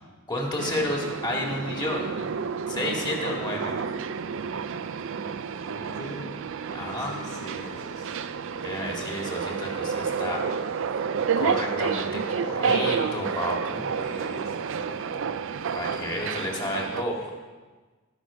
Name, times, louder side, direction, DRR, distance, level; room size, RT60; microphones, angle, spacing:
voice 1, 0.3-2.1 2.7-3.7 6.7-7.2 8.6-10.5 11.4-13.9 15.7-17.2, left 1 dB, 20° left, -1 dB, 2.2 m, -31 dB
sound 1, 0.6-17.0, right 6 dB, 65° right, 0.5 m, -30 dB
voice 2, 3.2-3.9 5.5-6.4 6.8-8.2 13.9-15.3 17.0-17.3, equal, 50° left, -4 dB, 3.9 m, -43 dB
19.5 x 6.5 x 5.0 m, 1.3 s
head